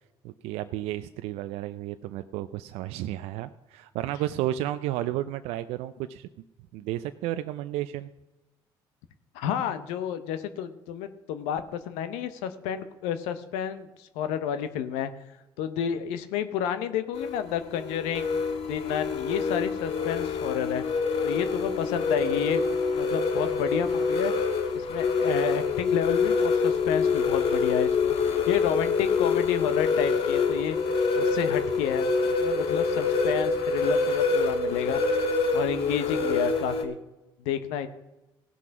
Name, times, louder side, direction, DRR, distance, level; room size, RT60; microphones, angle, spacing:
voice 1, 0.2-6.3 6.7-8.1, right 13 dB, 80° right, 11 dB, 0.4 m, -32 dB
voice 2, 9.3-15.1 15.6-18.3 18.7-20.8 21.2-22.6 22.9-24.3 24.7-28.1 28.5-30.8 31.2-32.1 32.4-35.0 35.5-37.0 37.4-37.9, left 9 dB, 85° left, 10 dB, 0.7 m, -30 dB
sound 1, 17.1-36.8, left 4 dB, 65° left, 1.4 m, -26 dB
16.5 x 6.2 x 5.8 m, 1.0 s
supercardioid pair, 65°, 11 cm